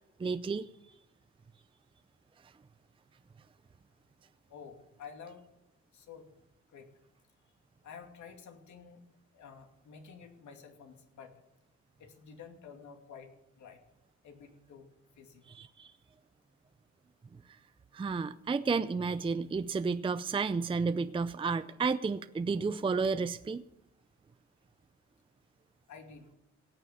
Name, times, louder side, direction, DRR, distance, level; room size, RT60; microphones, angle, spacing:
voice 1, 0.2-0.7 15.5-15.9 17.9-23.6, right 4 dB, 15° right, 12 dB, 0.5 m, -31 dB
voice 2, 4.5-5.4 5.9-6.3 6.7-6.9 7.8-9.0 9.3-11.3 12.0-13.8 14.2-14.9 15.2-15.5 25.9-26.3, left 6 dB, 70° left, 4 dB, 2.6 m, -50 dB
17.5 x 6.8 x 9.3 m, 0.86 s
cardioid pair, 90°, 30 cm